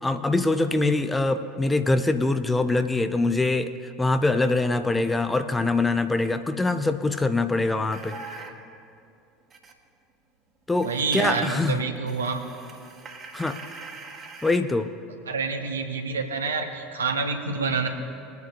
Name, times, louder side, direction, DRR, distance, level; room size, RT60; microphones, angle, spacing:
voice 1, 0.0-3.7 4.0-8.2 10.7-11.8 13.3-13.6 14.4-14.9, left 2 dB, 10° left, 10 dB, 0.6 m, -23 dB
sound 1, 7.9-8.6 9.5-9.7 10.7-11.6 12.0-14.6, right 4 dB, 30° right, 1.5 m, -42 dB
voice 2, 10.8-12.4 15.3-17.9, right 4 dB, 75° right, 4 dB, 0.9 m, -27 dB
21.5 x 9.4 x 2.4 m, 2.5 s
figure-of-eight pair, 70°, 0 cm